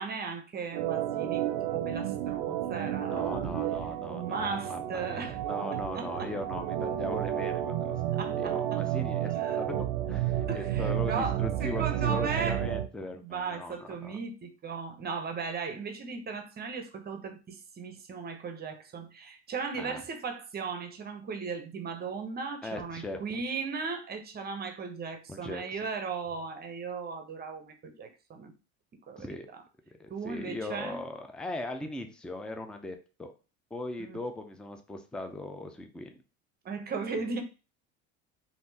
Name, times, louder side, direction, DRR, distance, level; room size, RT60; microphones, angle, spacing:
voice 1, 0.0-1.4 1.7-3.5 4.1-5.4 5.7-6.3 8.2-8.8 9.2-9.6 10.5-12.6 13.2-28.5 29.1-29.3 30.1-31.0 34.0-34.2 36.6-37.4, right 5 dB, 30° right, 0.7 m, -37 dB
Organ, 0.7-12.9, right 11 dB, 75° right, 0.5 m, -31 dB
voice 2, 3.1-8.0 8.4-14.2 19.8-20.0 22.6-23.4 25.3-25.8 29.2-29.5 30.0-33.3 33.7-36.2, left 2 dB, 5° left, 0.4 m, -39 dB
3.5 x 2.6 x 2.7 m
supercardioid pair, 105°, 33 cm